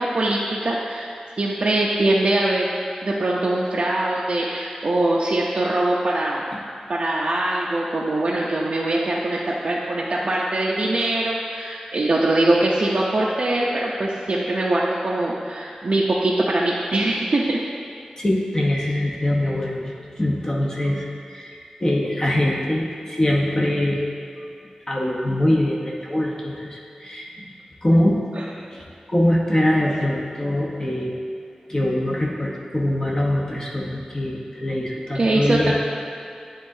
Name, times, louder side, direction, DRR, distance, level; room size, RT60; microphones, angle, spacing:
voice 1, 0.0-2.7 3.0-6.4 6.9-17.6 28.3-28.5 35.1-35.7, right 2 dB, 55° right, -5 dB, 0.6 m, -22 dB
voice 2, 18.2-24.0 24.9-27.5 27.8-28.2 28.7-31.1 31.7-35.7, left 1 dB, 30° left, -3 dB, 1.0 m, -23 dB
9.5 x 3.7 x 2.7 m, 2.5 s
wide cardioid pair, 65°, 2 cm